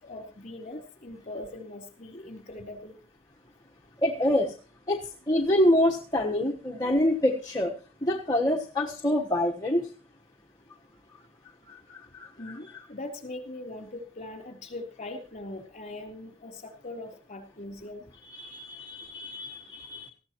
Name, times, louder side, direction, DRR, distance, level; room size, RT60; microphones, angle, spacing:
voice 1, 0.0-3.0 12.4-18.1 18.5-18.7, left 2 dB, 40° left, 4 dB, 3.4 m, -41 dB
voice 2, 4.0-4.5 4.9-7.7 8.0-9.8 11.7-12.8 18.3-20.1, left 1 dB, 20° left, -1 dB, 1.2 m, -26 dB
19.0 x 15.0 x 3.0 m, 0.36 s
head